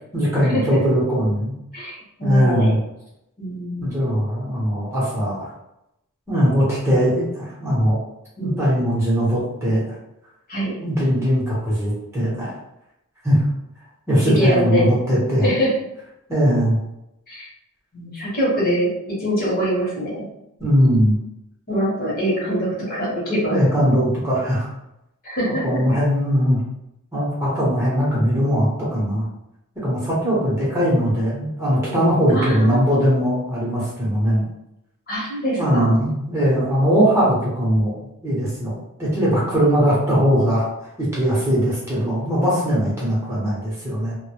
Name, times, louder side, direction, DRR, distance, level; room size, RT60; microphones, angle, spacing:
voice 1, 0.1-1.5 2.2-2.8 3.8-5.5 6.3-8.0 8.4-9.9 10.8-12.5 13.2-13.4 14.1-15.5 16.3-16.8 20.6-21.2 23.4-24.7 25.6-26.6 27.1-29.2 29.8-34.5 35.6-37.9 38.2-38.7 39.0-40.7 41.0-44.1, equal, 10° right, -8 dB, 0.8 m, -20 dB
voice 2, 1.7-2.7 3.4-4.0 8.4-8.7 10.5-10.7 14.3-14.9 15.4-15.7 17.3-17.5 17.9-18.9 19.2-20.3 21.7-23.6 25.2-25.6 32.3-33.0 35.1-35.9, equal, 40° left, -6 dB, 0.9 m, -23 dB
2.1 x 2.0 x 2.9 m, 0.85 s
head